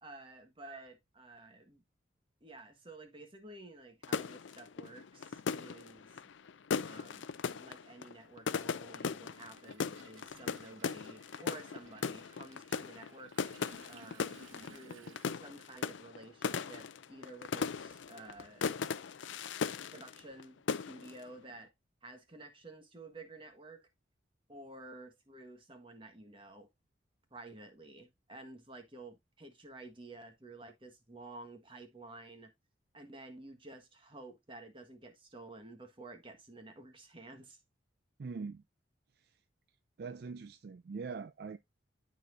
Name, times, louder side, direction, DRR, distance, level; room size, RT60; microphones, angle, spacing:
voice 1, 0.0-1.8 2.4-6.2 6.8-13.4 13.9-14.4 14.7-18.7 19.9-21.7 22.0-23.9 24.5-26.7 27.3-32.5 32.9-37.6, right 2 dB, 25° right, 1.4 m, -52 dB
sound 1, 4.0-20.4 20.7-21.2, left 6 dB, 75° left, 0.5 m, -38 dB
Toilet flush, 4.8-4.9 6.1-6.3 6.6-15.3, right 3 dB, 90° right, 1.2 m, -59 dB
voice 2, 38.2-38.6 39.2-39.4 40.0-41.6, right 4 dB, 55° right, 0.4 m, -43 dB
12.5 x 4.2 x 2.6 m
head